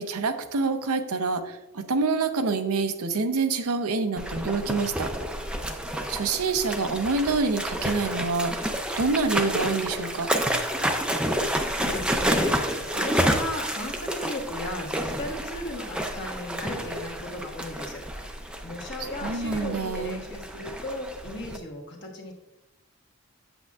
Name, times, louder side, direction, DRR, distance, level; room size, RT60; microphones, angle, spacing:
voice 1, 0.0-5.1 6.1-8.7 9.0-10.3 19.0-20.3, right 4 dB, 90° right, 8 dB, 0.6 m, -27 dB
sound 1, 4.2-21.6, equal, 5° right, 0.4 m, -30 dB
voice 2, 11.2-22.3, left 1 dB, 50° left, 1 dB, 1.3 m, -36 dB
7.9 x 7.5 x 2.3 m, 0.93 s
head